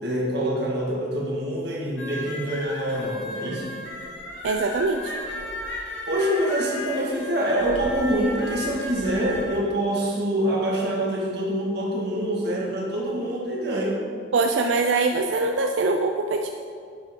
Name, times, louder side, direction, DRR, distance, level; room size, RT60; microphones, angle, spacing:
voice 1, 0.0-3.7 6.1-14.0, right 1 dB, 60° right, -3 dB, 1.8 m, -25 dB
sound 1, 2.0-9.4, left 1 dB, 85° left, 1.5 m, -35 dB
voice 2, 4.4-5.1 14.3-16.5, right 3 dB, 85° right, 4 dB, 0.4 m, -23 dB
9.5 x 7.5 x 3.7 m, 2.3 s
head